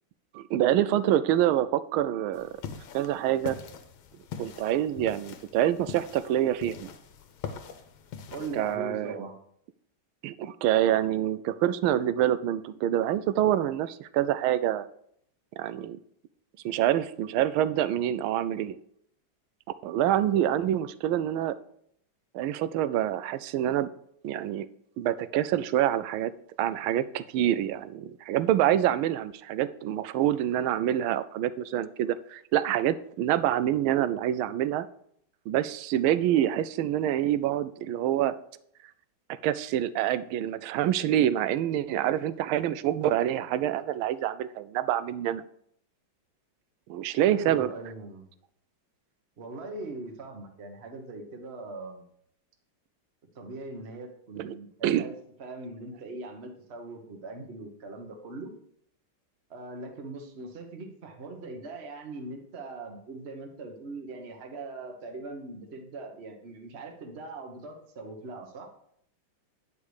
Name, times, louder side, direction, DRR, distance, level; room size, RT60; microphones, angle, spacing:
voice 1, 0.3-2.5 2.9-3.6 4.4-6.9 8.5-9.2 10.2-14.9 15.6-16.0 16.6-18.8 19.8-21.6 22.3-23.9 24.2-24.7 25.0-26.3 26.6-34.9 35.5-38.4 39.4-45.4 46.9-47.7 54.4-54.5 54.8-55.0, right 12 dB, 85° right, 14 dB, 1.4 m, -26 dB
sound 1, 2.3-8.8, left 7 dB, 80° left, 1.6 m, -43 dB
voice 2, 8.3-9.3 47.3-48.3 49.4-52.1 53.3-54.7 54.9-55.1 55.4-58.5 59.5-68.7, right 3 dB, 40° right, 3 dB, 1.2 m, -40 dB
9.7 x 5.2 x 4.8 m, 0.68 s
omnidirectional pair, 2.2 m